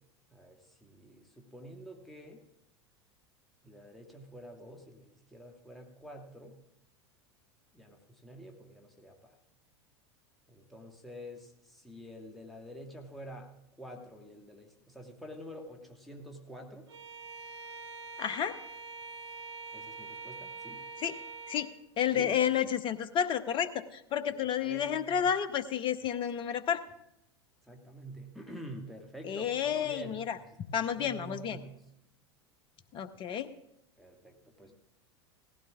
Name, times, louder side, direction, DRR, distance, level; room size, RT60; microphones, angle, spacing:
voice 1, 0.3-2.4 3.6-6.6 7.7-9.4 10.5-13.5 13.8-16.9 19.7-20.8 22.1-22.3 24.2-25.3 27.7-30.2 30.7-31.7 34.0-34.7, equal, ahead, 1 dB, 1.6 m, -48 dB
Bowed string instrument, 16.9-21.8, right 4 dB, 70° right, 0.8 m, -44 dB
voice 2, 18.2-18.5 21.0-21.1 21.5-21.7 22.0-26.8 29.2-30.4 30.7-31.6 32.9-33.5, left 9 dB, 35° left, 13 dB, 0.9 m, -31 dB
18.0 x 15.5 x 2.4 m, 0.81 s
figure-of-eight pair, 85°, 14 cm